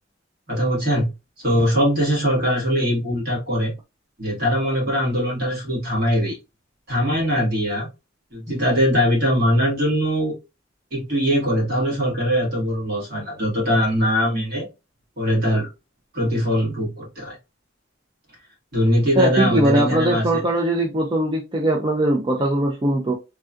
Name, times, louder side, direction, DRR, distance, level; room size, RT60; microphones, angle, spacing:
voice 1, 0.5-1.1 1.4-3.7 4.2-6.4 6.9-7.9 8.3-10.4 10.9-14.7 15.2-15.7 16.1-17.3 18.7-20.4, equal, 60° right, 1.8 m, -21 dB
voice 2, 19.2-23.1, right 1 dB, 25° right, 0.5 m, -20 dB
3.4 x 2.3 x 2.5 m
head